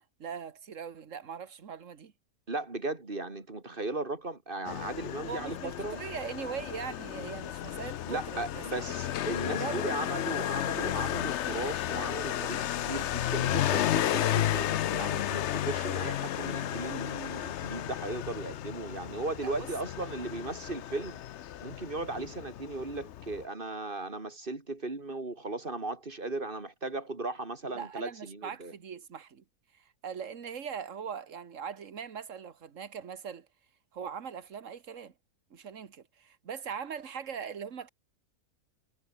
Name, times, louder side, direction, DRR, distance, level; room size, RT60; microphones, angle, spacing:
voice 1, 0.0-2.1 5.3-8.8 9.6-10.0 19.4-19.5 27.8-29.4 29.7-33.5 33.9-35.1 35.5-37.9, right 7 dB, 55° right, 1.8 m, -40 dB
voice 2, 2.5-6.1 8.1-21.2 21.6-28.7, right 2 dB, 35° right, 3.0 m, -37 dB
Motorcycle, 4.6-23.4, left 11 dB, 60° left, 0.8 m, -33 dB
omnidirectional pair, 1.6 m